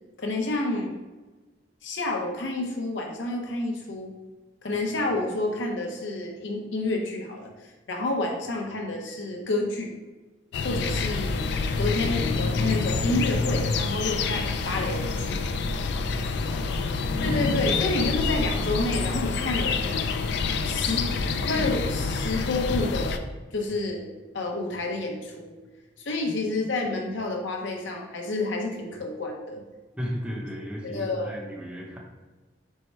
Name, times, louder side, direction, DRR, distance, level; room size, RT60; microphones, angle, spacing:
voice 1, 0.2-0.9 1.8-4.1 4.6-9.9 10.6-11.5 11.8-15.4 17.2-20.2 20.6-21.1 21.4-23.2 23.5-24.1 24.3-25.6 26.0-29.6 30.8-31.4, left 2 dB, 80° left, 2 dB, 0.7 m, -29 dB
sound 1, 10.5-23.2, left 4 dB, 65° left, 0.3 m, -27 dB
voice 2, 15.7-17.2 30.0-32.0, equal, 5° right, -3 dB, 0.7 m, -36 dB
4.5 x 2.1 x 4.4 m, 1.2 s
head